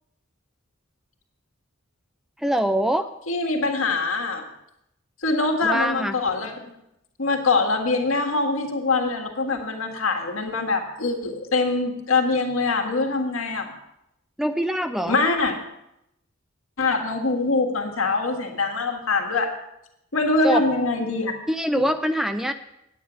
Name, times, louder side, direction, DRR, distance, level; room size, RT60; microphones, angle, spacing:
voice 1, 2.4-3.1 5.6-6.1 14.4-15.2 20.4-20.6 21.5-22.5, equal, ahead, 8 dB, 0.3 m, -23 dB
voice 2, 3.3-4.4 5.2-6.7 7.2-13.7 15.1-15.6 16.8-19.5 20.1-21.3 21.8-21.9, left 3 dB, 75° left, 2 dB, 1.7 m, -23 dB
9.3 x 9.2 x 6.1 m, 0.83 s
head